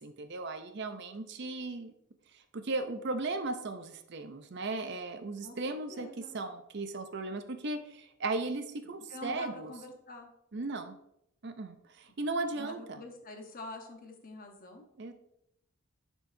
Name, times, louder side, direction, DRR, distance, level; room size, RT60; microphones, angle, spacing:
voice 1, 0.0-1.9 2.5-6.1 6.3-9.7 10.5-11.0 11.4-13.0 15.0-15.1, right 3 dB, 55° right, 8 dB, 0.6 m, -36 dB
voice 2, 5.9-6.4 9.1-10.3 12.5-14.9, left 2 dB, 40° left, 3 dB, 1.0 m, -46 dB
9.7 x 4.6 x 2.7 m, 0.78 s
head